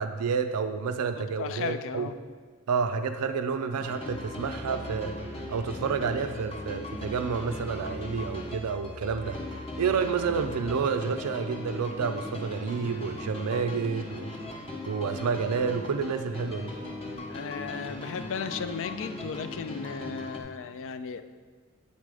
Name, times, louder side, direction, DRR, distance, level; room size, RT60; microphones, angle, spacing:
voice 1, 0.0-2.1 2.7-5.1 5.5-9.4 9.8-14.3 14.9-16.7, right 5 dB, 85° right, 9 dB, 0.4 m, -29 dB
voice 2, 1.1-2.2 17.3-21.2, left 6 dB, 60° left, 11 dB, 0.4 m, -35 dB
sound 1, 3.8-20.4, left 1 dB, 25° left, 0.8 m, -39 dB
Musical instrument, 4.0-10.9, equal, 5° left, 1.1 m, -44 dB
9.0 x 4.2 x 4.8 m, 1.6 s
head